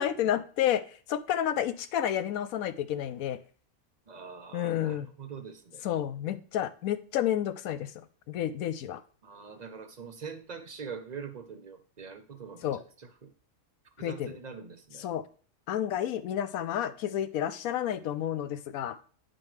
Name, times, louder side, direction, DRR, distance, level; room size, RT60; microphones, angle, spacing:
voice 1, 0.0-3.4 4.5-5.1 5.8-7.9 8.3-9.0 12.6-12.8 14.0-14.4 15.0-15.3 15.7-19.0, left 10 dB, 85° left, 13 dB, 1.0 m, -30 dB
voice 2, 4.1-5.8 9.2-12.7 13.0-13.3 14.0-15.1, right 6 dB, 50° right, 9 dB, 0.5 m, -43 dB
9.9 x 4.4 x 3.2 m, 0.42 s
omnidirectional pair, 1.4 m